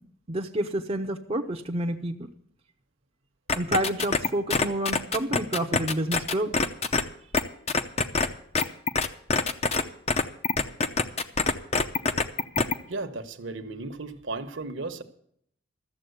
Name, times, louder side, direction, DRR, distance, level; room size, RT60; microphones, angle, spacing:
voice 1, 0.3-2.3 3.5-6.7, right 1 dB, 30° right, 2 dB, 0.7 m, -29 dB
sound 1, 3.5-7.0 7.3-7.4 7.7-8.3 8.5-9.8 10.1-12.7, left 4 dB, 30° left, 0.6 m, -24 dB
voice 2, 12.9-15.0, right 3 dB, 65° right, 8 dB, 1.1 m, -35 dB
13.5 x 7.4 x 8.0 m, 0.68 s
head